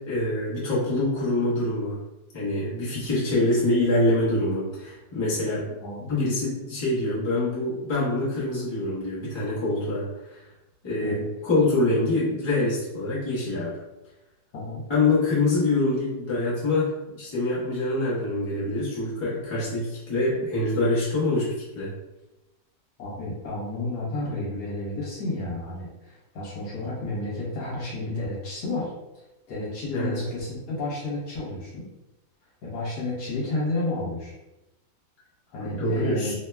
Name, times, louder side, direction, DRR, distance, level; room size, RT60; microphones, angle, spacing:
voice 1, 0.1-2.0 2.3-5.7 6.1-10.4 10.8-13.8 14.9-21.9 29.9-30.1 35.6-36.3, left 2 dB, 25° left, -9 dB, 0.6 m, -25 dB
voice 2, 5.8-6.1 11.0-11.2 14.5-14.8 23.0-28.9 29.1-31.9 32.6-34.3 35.5-36.3, left 2 dB, 65° left, -6 dB, 1.4 m, -31 dB
3.3 x 2.1 x 2.2 m, 0.98 s
omnidirectional pair, 2.0 m